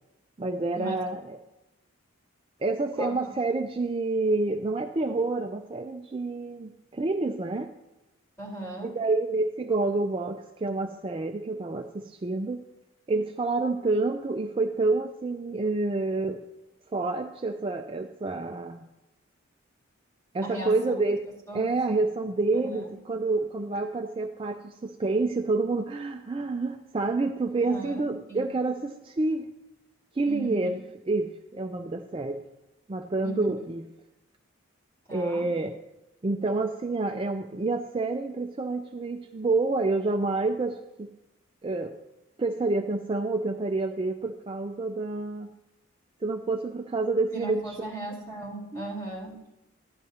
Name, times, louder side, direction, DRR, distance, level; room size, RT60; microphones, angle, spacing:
voice 1, 0.4-1.4 2.6-7.7 8.8-12.6 13.1-16.4 16.9-18.8 20.3-21.2 21.5-29.5 30.1-32.4 32.9-33.8 35.1-35.7 36.2-41.1 41.6-41.9 42.4-45.5 46.2-47.6 48.7-48.8, right 3 dB, 25° right, 5 dB, 0.4 m, -28 dB
voice 2, 8.4-8.9 20.4-20.8 21.5-21.7 22.6-22.9 27.6-28.5 30.2-30.7 33.2-33.7 35.1-35.5 47.3-49.4, right 2 dB, 15° left, -5 dB, 3.9 m, -37 dB
14.5 x 11.0 x 2.8 m, 0.95 s
head